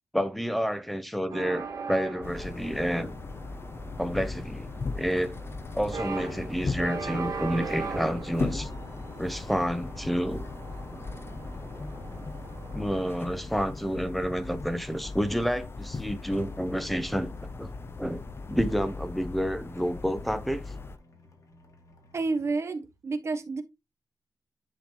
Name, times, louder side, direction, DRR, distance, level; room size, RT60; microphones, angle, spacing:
voice 1, 0.1-3.2 4.0-4.7 4.9-5.3 5.7-8.7 9.2-10.5 12.7-17.3 17.6-17.7 18.0-20.6, equal, ahead, 0.8 m, -29 dB
sound 1, 1.3-13.2, right 5 dB, 55° right, 2.6 m, -40 dB
sound 2, 2.2-21.0, left 3 dB, 35° left, 0.6 m, -38 dB
sound 3, 8.2-22.5, left 2 dB, 55° left, 2.2 m, -56 dB
voice 2, 22.1-23.6, right 3 dB, 40° right, 1.3 m, -30 dB
10.0 x 4.0 x 3.0 m
wide cardioid pair, 115°, 7 cm